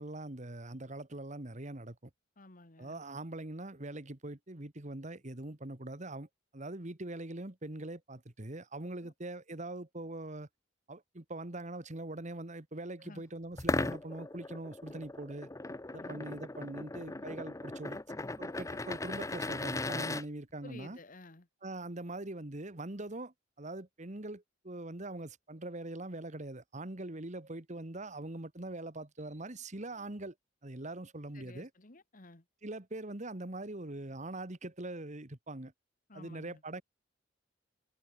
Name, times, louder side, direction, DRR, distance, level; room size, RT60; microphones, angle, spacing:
voice 1, 0.0-2.1 2.8-6.3 6.5-10.5 10.9-15.5 15.9-18.0 18.4-21.0 21.6-30.3 30.6-31.7 32.6-35.7 36.1-36.8, right 2 dB, 40° right, 1.8 m, -42 dB
voice 2, 2.4-3.0 9.0-9.1 13.0-13.2 16.0-16.2 17.1-17.3 20.6-21.5 31.3-32.4 36.1-36.6, left 2 dB, 45° left, 1.9 m, -53 dB
sound 1, 13.6-20.2, left 2 dB, 15° left, 0.7 m, -37 dB
head